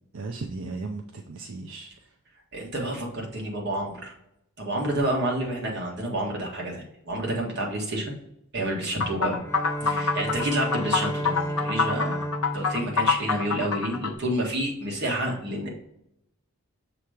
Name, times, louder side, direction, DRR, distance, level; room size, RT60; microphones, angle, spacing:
voice 1, 0.1-1.9 9.8-10.1, right 3 dB, 65° right, 3 dB, 0.5 m, -36 dB
voice 2, 2.5-4.1 4.6-8.1 8.5-9.4 9.8-15.7, right 1 dB, 50° right, -1 dB, 1.5 m, -29 dB
sound 1, 9.0-14.1, left 5 dB, 70° left, 0.7 m, -26 dB
Bowed string instrument, 9.4-14.3, equal, 10° left, 0.4 m, -33 dB
7.0 x 3.0 x 4.9 m, 0.81 s
head